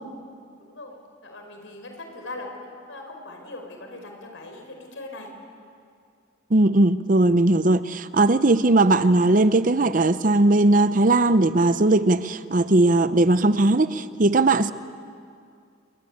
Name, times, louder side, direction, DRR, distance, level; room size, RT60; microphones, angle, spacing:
voice 1, 0.6-5.3, left 2 dB, 90° left, 5.4 m, -40 dB
voice 2, 6.5-14.7, right 2 dB, 45° right, 0.7 m, -19 dB
27.5 x 21.5 x 8.7 m
head